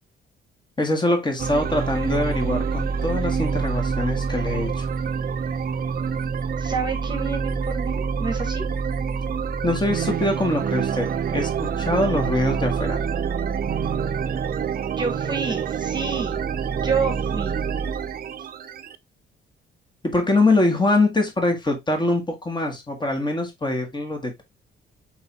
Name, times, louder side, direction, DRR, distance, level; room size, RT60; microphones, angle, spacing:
voice 1, 0.8-4.9 9.6-13.0 20.1-24.4, left 2 dB, 25° left, 1.7 m, -23 dB
sound 1, 1.4-18.9, right 6 dB, 50° right, 0.6 m, -26 dB
voice 2, 6.6-8.6 15.0-16.4 16.8-17.6, right 5 dB, 20° right, 1.4 m, -28 dB
4.5 x 3.9 x 2.8 m
cardioid pair, 90°, 20 cm